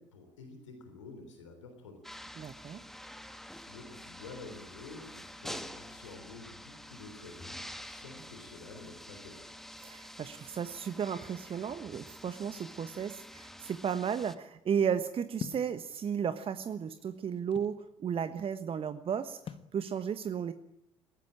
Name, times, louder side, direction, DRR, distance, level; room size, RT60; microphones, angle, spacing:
voice 1, 0.0-2.2 3.6-9.5, left 3 dB, 75° left, 5 dB, 3.7 m, -49 dB
sound 1, 2.0-14.4, equal, ahead, 1.8 m, -48 dB
voice 2, 2.4-2.8 9.8-20.5, right 7 dB, 35° right, 12 dB, 1.3 m, -34 dB
sound 2, 15.4-15.7 16.6-17.8 19.5-19.8, left 7 dB, 35° left, 1.4 m, -42 dB
21.5 x 18.5 x 8.8 m, 0.82 s
figure-of-eight pair, 60°, 16 cm